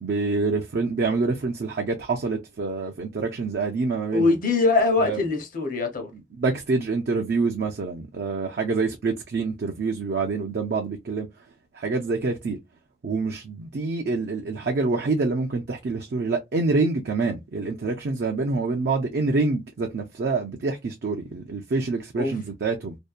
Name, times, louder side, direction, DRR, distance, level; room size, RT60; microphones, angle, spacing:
voice 1, 0.0-4.4 5.0-5.2 6.1-11.3 11.7-12.6 13.0-23.0, right 3 dB, 65° right, 0.4 m, -26 dB
voice 2, 4.1-6.1 22.2-22.3, left 3 dB, 50° left, 0.8 m, -22 dB
2.6 x 2.1 x 2.3 m
head